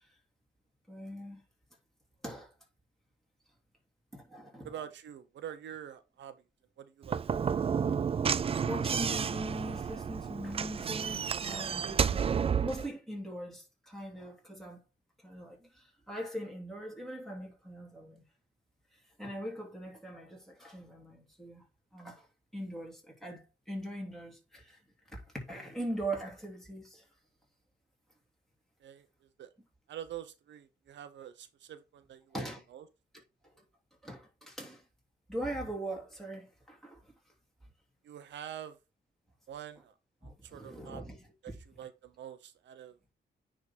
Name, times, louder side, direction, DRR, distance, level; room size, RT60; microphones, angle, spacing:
voice 1, 0.9-1.4 2.2-2.5 4.1-4.7 8.3-12.2 12.6-14.8 15.2-18.2 19.2-21.6 21.9-22.3 22.5-24.8 25.1-27.0 32.3-32.6 34.0-34.8 35.3-37.1 40.2-41.2, right 1 dB, ahead, 3.0 m, -41 dB
voice 2, 4.6-6.4 6.8-7.2 28.8-29.5 29.9-32.4 32.7-32.9 38.0-38.8 39.5-39.9 40.2-41.0 41.4-41.5 41.8-43.0, right 10 dB, 85° right, 0.8 m, -46 dB
Slam / Knock, 7.0-12.9, right 7 dB, 30° right, 0.4 m, -31 dB
9.5 x 3.8 x 4.4 m
cardioid pair, 115°, 18 cm